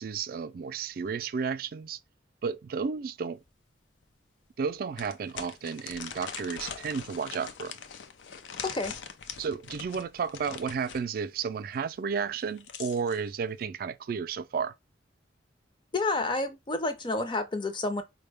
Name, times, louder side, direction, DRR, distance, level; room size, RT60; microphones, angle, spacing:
voice 1, 0.0-2.0 2.4-3.4 4.6-7.7 9.4-14.7, right 6 dB, 50° right, 0.3 m, -32 dB
sound 1, 3.5-3.6 4.0-4.1 5.0-11.1 12.3-13.2, left 7 dB, 85° left, 0.5 m, -42 dB
voice 2, 8.6-9.0 15.9-18.0, left 2 dB, 25° left, 0.5 m, -29 dB
4.5 x 2.1 x 3.3 m
head